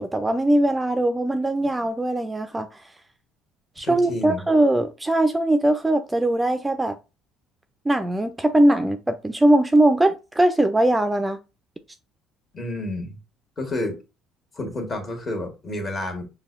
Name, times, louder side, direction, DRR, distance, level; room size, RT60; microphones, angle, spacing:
voice 1, 0.0-2.7 3.8-7.0 7.9-11.4, right 1 dB, 15° right, 0.4 m, -20 dB
voice 2, 3.8-4.4 12.5-13.2 13.6-14.0 14.5-16.3, left 1 dB, 35° left, 1.4 m, -30 dB
5.3 x 2.2 x 2.4 m
supercardioid pair, 85°, 0 cm